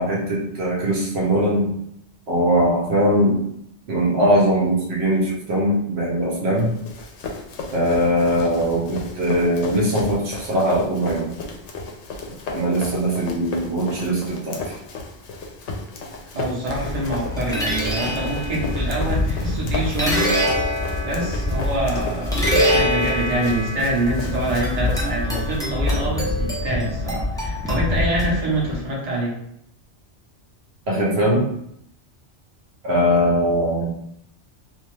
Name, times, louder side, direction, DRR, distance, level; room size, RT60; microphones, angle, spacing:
voice 1, 0.0-1.7 2.3-3.4 3.9-6.7 7.7-11.4 12.5-14.7 30.9-31.4 32.8-33.9, equal, 65° right, -4 dB, 0.9 m, -21 dB
Run, 6.6-26.4, left 3 dB, 75° left, 0.8 m, -35 dB
voice 2, 16.3-29.3, right 1 dB, 40° right, -4 dB, 0.8 m, -26 dB
sound 1, 16.6-28.7, left 1 dB, 5° left, 0.4 m, -24 dB
2.5 x 2.3 x 3.1 m, 0.75 s
omnidirectional pair, 1.2 m